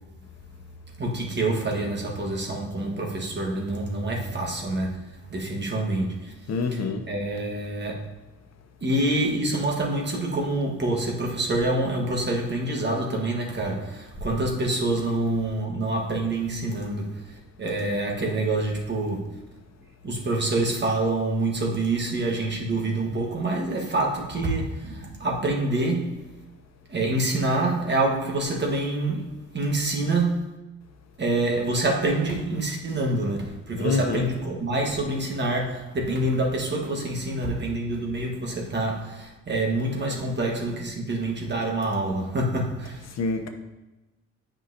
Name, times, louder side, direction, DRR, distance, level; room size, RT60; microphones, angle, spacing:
voice 1, 1.0-6.3 6.7-6.8 7.0-8.1 8.8-17.2 17.6-19.3 20.0-26.3 26.9-30.6 31.2-43.0, right 2 dB, 35° right, 1.6 m, -26 dB
voice 2, 6.5-7.0 33.8-34.3 43.2-43.5, left 4 dB, 60° left, 1.0 m, -26 dB
9.0 x 5.8 x 2.8 m
cardioid pair, 90°, 30 cm